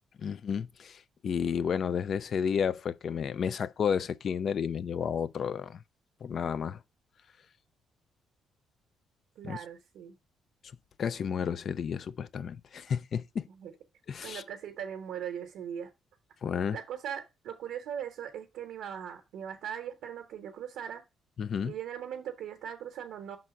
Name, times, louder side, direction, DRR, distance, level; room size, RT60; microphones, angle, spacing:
voice 1, 0.2-5.8 6.2-6.8 9.4-9.6 11.0-13.5 14.1-14.4 16.4-16.8 21.4-21.7, left 7 dB, 55° left, 0.4 m, -31 dB
voice 2, 9.4-10.2 13.5-13.7 14.2-15.9 16.7-21.0 21.6-23.4, right 9 dB, 85° right, 0.9 m, -39 dB
5.6 x 3.9 x 5.8 m
cardioid pair, 90°, 0 cm